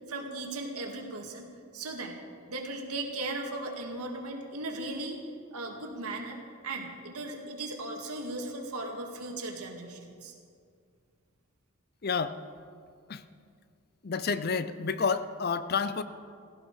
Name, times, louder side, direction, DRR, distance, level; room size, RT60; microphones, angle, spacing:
voice 1, 0.1-2.2 2.5-5.2 5.5-10.3, right 2 dB, 90° right, 2 dB, 2.1 m, -37 dB
voice 2, 12.0-12.4 13.1-13.2 14.0-16.0, left 5 dB, 45° left, 13 dB, 0.5 m, -29 dB
16.5 x 15.5 x 4.8 m, 2.3 s
head